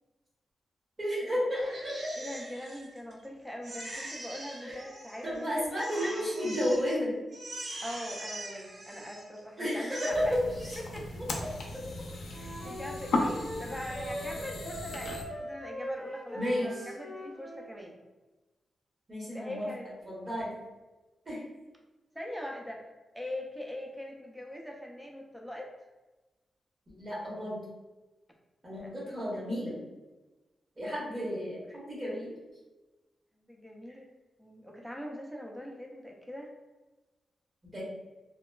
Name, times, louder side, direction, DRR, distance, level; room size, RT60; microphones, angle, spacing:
voice 1, 1.0-1.9 2.2-2.3 4.6-4.8 5.2-7.1 9.6-10.8 13.2-13.4 16.3-16.8 19.1-19.7 20.0-20.5 21.2-21.4 26.9-27.6 28.6-29.8 30.8-32.3 37.7-37.8, equal, 30° right, -7 dB, 1.0 m, -32 dB
Crying sobbing, 1.6-3.2 3.6-5.4 5.8-7.0 7.3-9.4 9.7-10.1, right 1 dB, 75° right, 0.6 m, -43 dB
voice 2, 2.2-5.7 6.0-6.3 7.8-10.3 10.9-11.2 12.3-18.0 19.3-19.9 22.1-25.7 28.6-29.2 31.1-31.3 33.4-34.1 34.4-36.5, left 1 dB, ahead, 0 dB, 0.3 m, -42 dB
sound 1, 10.1-15.2, left 2 dB, 90° left, 0.4 m, -36 dB
Wind instrument woodwind instrument, 12.3-17.7, equal, 55° right, 1.5 m, -41 dB
2.8 x 2.2 x 2.2 m, 1.2 s
wide cardioid pair, 155°, 0 cm